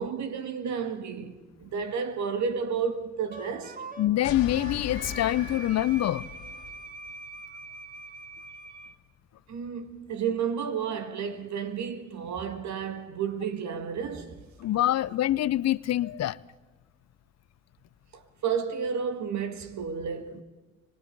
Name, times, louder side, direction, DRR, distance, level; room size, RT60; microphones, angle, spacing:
voice 1, 0.0-3.8 9.5-14.5 18.1-20.4, right 6 dB, 70° right, 2.0 m, -32 dB
Wind instrument woodwind instrument, 3.3-8.9, right 3 dB, 30° right, 1.8 m, -43 dB
voice 2, 4.0-6.3 14.6-16.4, left 13 dB, 60° left, 0.6 m, -25 dB
sound 1, 4.2-6.8, left 8 dB, 90° left, 2.0 m, -39 dB
25.0 x 23.0 x 4.7 m
supercardioid pair, 55°, 29 cm